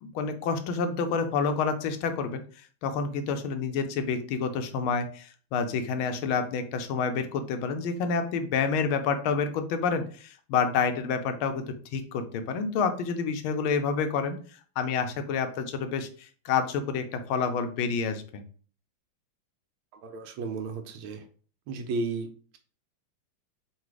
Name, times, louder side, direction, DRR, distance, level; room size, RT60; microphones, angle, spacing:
voice 1, 0.0-14.4 14.8-18.4, left 5 dB, 85° left, 8 dB, 1.4 m, -28 dB
voice 2, 19.9-21.2 21.7-22.6, right 3 dB, 80° right, 6 dB, 1.4 m, -34 dB
3.9 x 2.4 x 4.6 m, 0.42 s
omnidirectional pair, 2.3 m